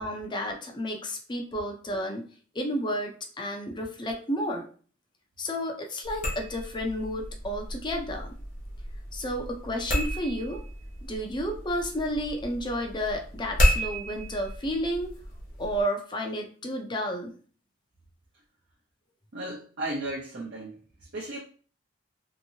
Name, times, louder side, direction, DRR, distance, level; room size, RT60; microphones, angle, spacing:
voice 1, 0.0-2.3 2.5-4.7 5.4-8.3 9.1-10.6 11.0-15.1 15.6-17.3, equal, 25° left, 2 dB, 0.5 m, -31 dB
sound 1, 6.0-15.8, equal, 45° left, 1.0 m, -31 dB
voice 2, 19.3-20.8 21.1-21.4, right 1 dB, 55° right, -5 dB, 0.7 m, -34 dB
3.0 x 2.6 x 2.7 m, 0.42 s
head